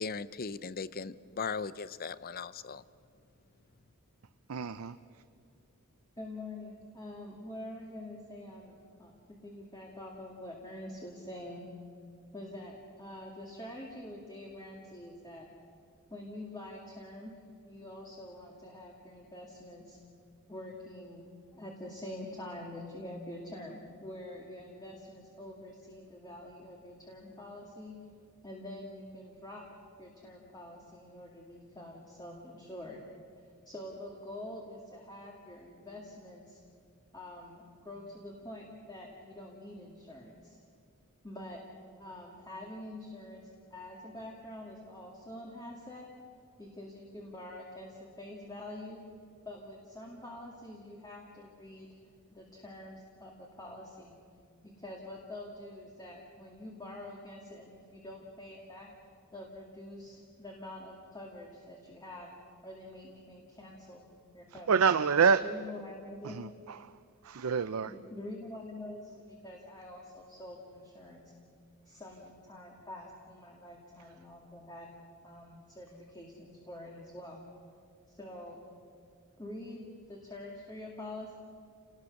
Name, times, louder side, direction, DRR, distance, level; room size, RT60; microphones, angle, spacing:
voice 1, 0.0-2.8, left 5 dB, 45° left, 0.6 m, -38 dB
voice 2, 4.5-5.0 64.7-65.5 66.2-66.9 67.2-67.9, right 6 dB, 85° right, 0.6 m, -27 dB
voice 3, 6.2-11.7 12.3-15.5 16.1-20.0 20.5-27.9 28.4-29.7 30.0-33.0 33.4-36.6 37.1-40.6 41.2-41.6 42.0-46.1 46.6-49.0 49.4-51.9 52.3-54.1 54.6-58.9 59.3-62.3 62.6-64.1 64.3-64.8 65.4-66.4 67.9-71.3 71.9-74.9 75.2-77.4 78.1-78.6 79.4-81.3, left 1 dB, 20° left, 2.4 m, -46 dB
29.5 x 19.5 x 6.5 m
head